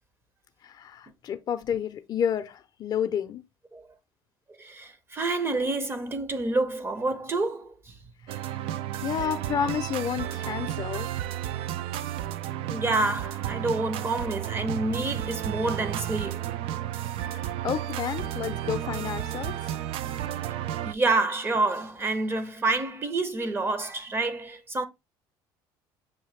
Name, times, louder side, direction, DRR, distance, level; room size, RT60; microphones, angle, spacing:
voice 1, 0.6-3.4 8.3-11.1 17.2-19.7, left 8 dB, 45° left, 0.5 m, -31 dB
voice 2, 4.6-7.9 12.7-16.4 18.8-18.9 20.9-24.9, right 3 dB, 25° right, 0.6 m, -28 dB
sound 1, 8.3-20.9, right 12 dB, 70° right, 0.4 m, -32 dB
6.4 x 2.2 x 3.1 m
cardioid pair, 115°, 10 cm